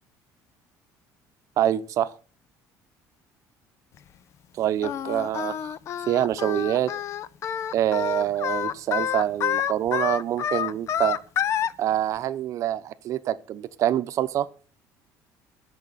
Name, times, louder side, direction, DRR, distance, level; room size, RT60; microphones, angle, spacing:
voice 1, 1.6-2.1 4.6-5.7 6.1-6.9 7.7-11.2 11.8-14.5, right 11 dB, 50° right, 0.8 m, -25 dB
Singing, 4.8-11.7, left 9 dB, 45° left, 0.5 m, -28 dB
20.5 x 7.2 x 4.2 m
cardioid pair, 155°, 7 cm